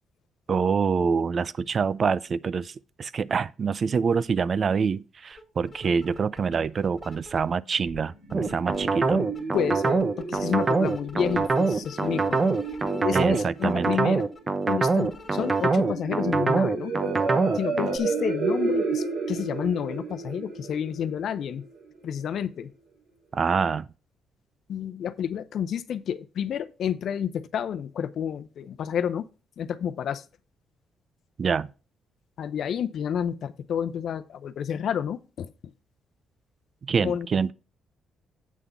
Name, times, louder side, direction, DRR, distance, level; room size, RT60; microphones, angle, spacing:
voice 1, 0.5-9.2 13.1-13.9 23.3-23.9 31.4-31.7 36.8-37.5, right 5 dB, 45° right, 0.4 m, -26 dB
sound 1, 5.3-5.4 5.7-7.5 7.9-8.8 9.2-15.7, left 3 dB, 30° left, 2.2 m, -46 dB
sound 2, 7.8-21.8, right 3 dB, 90° right, 4.2 m, -33 dB
sound 3, 8.3-18.0, right 4 dB, 30° right, 0.9 m, -24 dB
voice 2, 9.5-12.5 12.9-14.3 14.7-16.9 17.5-21.6 22.0-22.7 24.7-29.3 29.6-30.2 32.4-35.7 37.0-37.3, left 8 dB, 65° left, 0.7 m, -30 dB
8.4 x 3.7 x 6.7 m
cardioid pair, 90°, 0 cm